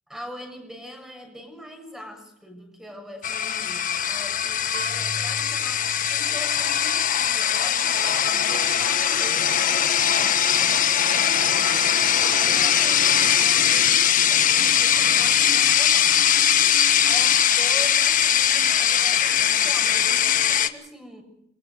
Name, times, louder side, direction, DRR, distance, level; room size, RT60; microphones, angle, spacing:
voice 1, 0.1-11.6 12.0-16.5 17.0-21.2, equal, 5° right, 4 dB, 7.1 m, -42 dB
sound 1, 3.2-20.7, left 9 dB, 45° left, 1.4 m, -20 dB
Marimba xylophone / Wood, 4.7-7.6, right 2 dB, 75° right, 2.3 m, -40 dB
28.5 x 23.5 x 4.9 m, 0.76 s
head